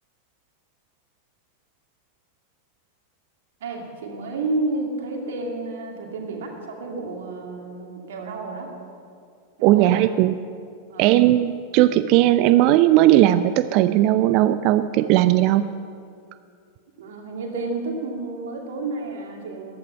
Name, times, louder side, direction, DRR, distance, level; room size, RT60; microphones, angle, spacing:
voice 1, 3.6-8.7 9.6-10.1 10.9-11.1 17.0-19.8, right 2 dB, 60° right, 1 dB, 2.3 m, -31 dB
voice 2, 9.6-10.4 11.0-15.7, right 14 dB, 40° right, 13 dB, 0.4 m, -17 dB
14.5 x 11.5 x 5.7 m, 2.2 s
figure-of-eight pair, 90°, 0 cm